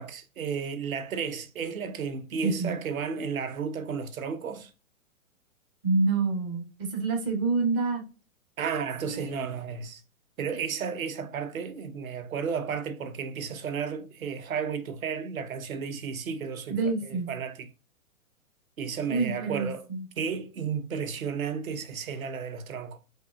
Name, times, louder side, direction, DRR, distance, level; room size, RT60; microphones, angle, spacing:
voice 1, 0.0-4.7 8.6-10.0 10.4-17.7 18.8-19.8 20.2-23.0, right 6 dB, 75° right, 0.9 m, -33 dB
voice 2, 5.8-8.0 9.1-9.2 16.7-17.3 19.1-20.1, right 4 dB, 15° right, 0.4 m, -27 dB
5.5 x 2.9 x 2.2 m
hypercardioid pair, 130°, 42 cm